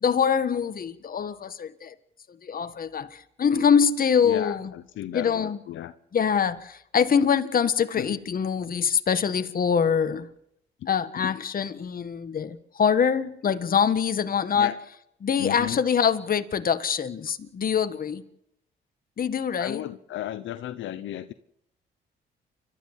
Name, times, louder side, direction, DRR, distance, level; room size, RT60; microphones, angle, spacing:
voice 1, 0.0-1.9 2.4-4.7 5.1-5.6 6.1-10.3 10.9-14.7 15.2-18.2 19.2-19.8, left 7 dB, 45° left, 1.6 m, -24 dB
voice 2, 4.2-5.9 8.0-8.2 10.8-11.4 14.5-14.8 15.4-15.8 19.6-21.3, left 12 dB, 75° left, 1.0 m, -34 dB
29.5 x 13.0 x 7.4 m
cardioid pair, 90°, 20 cm